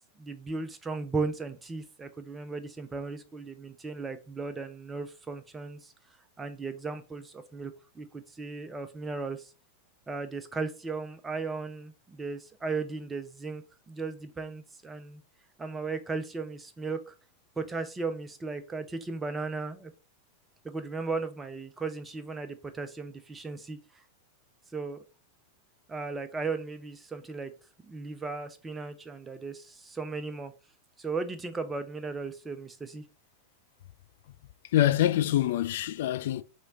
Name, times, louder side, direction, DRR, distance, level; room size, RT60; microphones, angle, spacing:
voice 1, 0.2-5.9 6.4-9.5 10.1-15.2 15.6-17.1 17.6-19.9 20.6-23.8 24.7-25.0 25.9-27.5 27.8-30.5 31.0-33.0, right 4 dB, 15° right, 0.6 m, -36 dB
voice 2, 34.7-36.4, left 12 dB, 55° left, 0.3 m, -25 dB
3.1 x 3.0 x 3.7 m
figure-of-eight pair, 90°, 0 cm